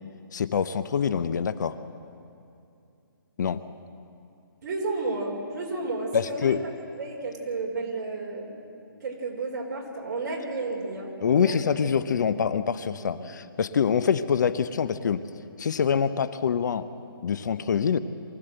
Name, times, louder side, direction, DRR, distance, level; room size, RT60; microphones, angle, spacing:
voice 1, 0.3-1.8 3.4-3.6 6.1-6.6 11.2-15.2 15.6-16.9 17.2-18.0, left 7 dB, 50° left, 13 dB, 0.7 m, -25 dB
voice 2, 4.6-6.6 7.0-8.5 9.0-12.0 12.3-12.5 13.0-13.2, right 3 dB, 45° right, -1 dB, 4.3 m, -32 dB
23.5 x 15.5 x 7.8 m, 2.6 s
hypercardioid pair, 165°, 12 cm